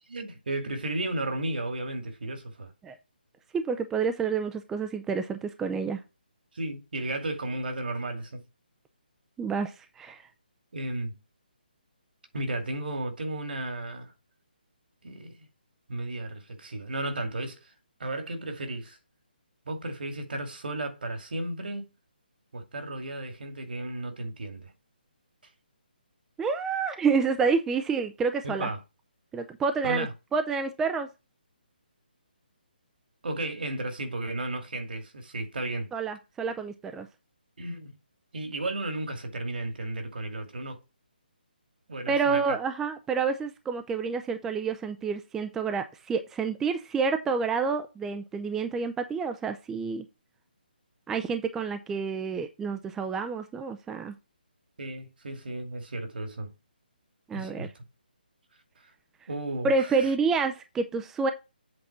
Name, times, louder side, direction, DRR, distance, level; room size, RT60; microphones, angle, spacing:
voice 1, 0.1-2.7 6.5-8.4 10.7-11.1 12.3-14.1 15.0-15.3 15.9-17.7 18.0-19.0 19.7-21.8 22.5-24.7 28.4-28.8 29.8-30.1 33.2-35.9 37.6-38.0 38.3-40.8 41.9-42.6 54.8-56.5 57.3-57.8 59.3-60.1, right 2 dB, 70° right, 2.4 m, -34 dB
voice 2, 3.5-6.0 9.4-10.2 26.4-28.7 29.3-30.1 30.3-31.1 35.9-37.1 42.1-50.1 51.1-54.1 57.3-57.7 59.6-61.3, right 5 dB, 5° right, 0.5 m, -28 dB
7.9 x 4.1 x 5.9 m
hypercardioid pair, 160°, 5 cm